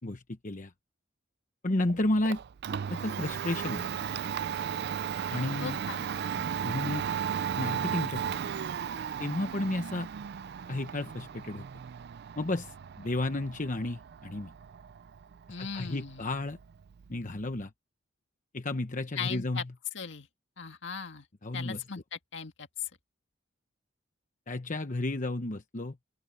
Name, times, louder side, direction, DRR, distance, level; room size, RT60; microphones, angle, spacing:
voice 1, 0.0-0.7 1.6-2.4 2.9-3.9 5.3-5.8 6.6-7.0 7.6-8.4 9.2-10.1 10.7-11.6 12.4-14.5 15.6-16.6 17.1-17.7 18.5-19.7 21.4-21.8 24.5-26.0, left 2 dB, 40° left, 1.0 m, -32 dB
Domestic sounds home sounds, 1.8-17.6, right 8 dB, 55° right, 0.4 m, -36 dB
voice 2, 5.6-6.1 15.5-16.3 19.2-19.6 19.9-20.3 20.6-21.3 21.5-22.9, left 6 dB, 65° left, 2.0 m, -38 dB
open air
head